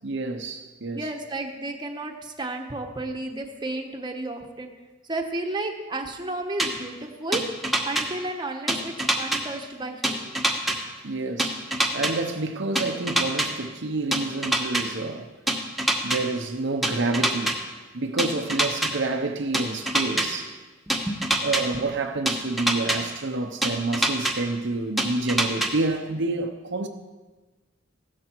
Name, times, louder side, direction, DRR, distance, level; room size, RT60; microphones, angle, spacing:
voice 1, 0.0-1.1 11.0-15.3 16.0-17.6 17.9-20.6 21.4-26.9, right 3 dB, 55° right, 0.8 m, -28 dB
voice 2, 0.9-4.7 5.0-7.4 7.8-10.4 20.9-21.2 21.7-21.9, right 2 dB, 20° right, 1.2 m, -32 dB
sound 1, 6.6-6.7 7.3-8.0 8.7-9.4 10.0-10.8 11.4-12.1 12.8-13.5 14.1-14.8 15.5-16.2 16.8-17.5 18.2-18.9 19.5-20.3 20.9-21.6 22.3-23.0 23.6-24.3 25.0-25.7, right 1 dB, ahead, 1.3 m, -23 dB
16.0 x 12.5 x 4.6 m
head